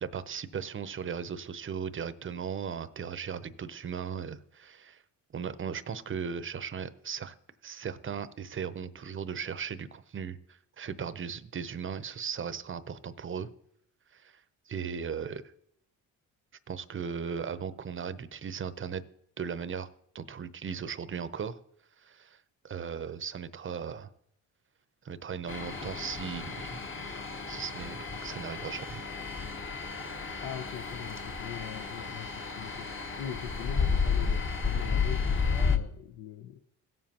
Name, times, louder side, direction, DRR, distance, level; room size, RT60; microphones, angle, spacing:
voice 1, 0.0-5.0 5.3-7.3 7.6-13.5 14.1-14.4 14.7-15.5 16.7-19.0 19.4-19.9 20.1-21.6 22.0-24.1 25.0-26.8 27.5-29.0, right 7 dB, 30° right, 13 dB, 0.7 m, -37 dB
sound 1, 25.5-35.8, left 5 dB, 30° left, 1.1 m, -32 dB
voice 2, 30.4-36.6, left 9 dB, 70° left, 6 dB, 0.8 m, -41 dB
16.5 x 7.4 x 2.9 m, 0.71 s
supercardioid pair, 70°, 38 cm